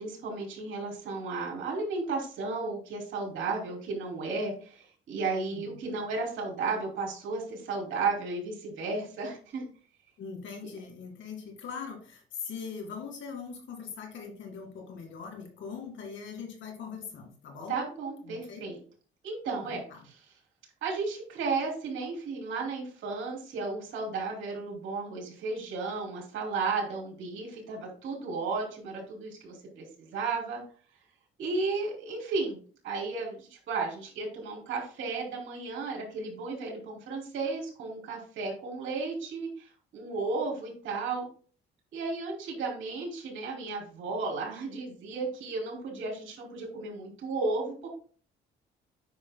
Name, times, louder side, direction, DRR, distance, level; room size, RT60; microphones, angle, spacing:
voice 1, 0.0-9.7 17.7-18.8 19.2-20.1 20.8-30.6 31.4-32.6 32.8-41.3 41.9-47.9, right 3 dB, 75° right, 0 dB, 3.1 m, -34 dB
voice 2, 10.2-17.8 18.2-18.6 19.6-20.0, left 6 dB, 70° left, 2 dB, 2.2 m, -41 dB
9.3 x 5.5 x 2.3 m, 0.41 s
cardioid pair, 90°, 20 cm